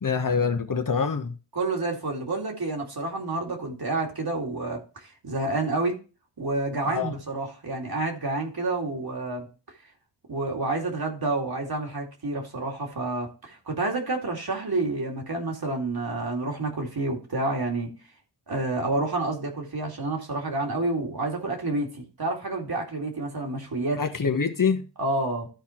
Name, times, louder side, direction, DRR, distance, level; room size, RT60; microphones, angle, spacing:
voice 1, 0.0-1.3 6.8-7.1 24.0-24.8, left 5 dB, 50° left, 1.1 m, -25 dB
voice 2, 1.5-6.0 6.4-9.5 10.3-17.9 18.5-24.0 25.0-25.5, right 2 dB, 55° right, 2.4 m, -29 dB
13.0 x 4.5 x 4.4 m
wide cardioid pair, 85°, 43 cm